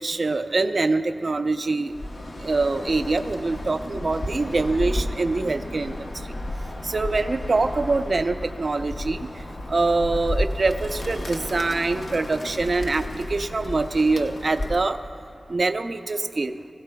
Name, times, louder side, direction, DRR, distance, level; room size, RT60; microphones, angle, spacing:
voice 1, 0.0-1.9 2.4-6.0 6.8-9.3 9.7-15.0 15.5-16.5, right 3 dB, 55° right, 8 dB, 0.6 m, -24 dB
Bird, 1.9-15.0, left 1 dB, 70° left, 0.9 m, -33 dB
21.0 x 15.5 x 2.3 m, 2.6 s
wide cardioid pair, 75°, 0 cm